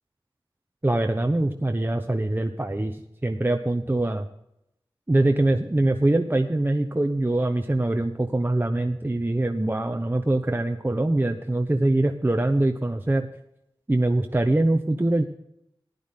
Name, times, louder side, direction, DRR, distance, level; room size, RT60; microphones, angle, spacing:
voice 1, 0.8-2.9 3.2-4.3 5.1-13.3 13.9-15.2, right 2 dB, 20° right, 5 dB, 0.9 m, -23 dB
14.5 x 11.0 x 3.7 m, 0.79 s
wide cardioid pair, 55°, 9 cm